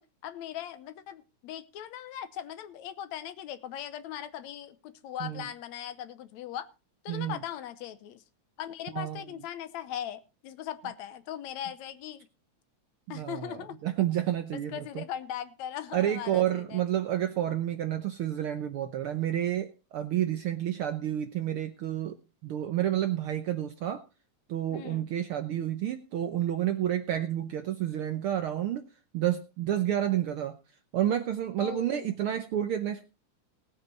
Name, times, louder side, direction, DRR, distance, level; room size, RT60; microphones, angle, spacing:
voice 1, 0.0-6.7 7.0-8.2 8.6-12.3 13.1-13.8 14.5-16.8 24.7-25.1 31.6-32.1, left 10 dB, 75° left, 13 dB, 2.1 m, -39 dB
voice 2, 7.1-7.4 8.9-9.2 13.1-15.0 15.9-22.1 22.4-24.0 24.5-28.8 29.1-30.6 30.9-33.0, right 11 dB, 70° right, 9 dB, 1.3 m, -30 dB
19.0 x 8.3 x 4.1 m, 0.30 s
omnidirectional pair, 3.3 m